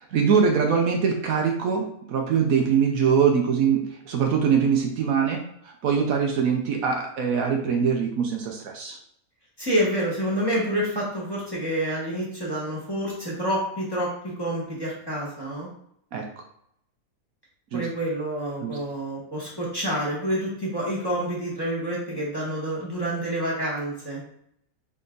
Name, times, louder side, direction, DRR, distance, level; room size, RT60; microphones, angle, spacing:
voice 1, 0.1-5.4 5.6-9.0 16.1-16.3 17.7-17.9 18.6-18.8, right 6 dB, 70° right, 2 dB, 1.1 m, -23 dB
voice 2, 9.6-15.7 17.7-24.2, right 1 dB, 15° left, -6 dB, 1.6 m, -28 dB
3.8 x 3.4 x 3.8 m, 0.72 s
omnidirectional pair, 1.6 m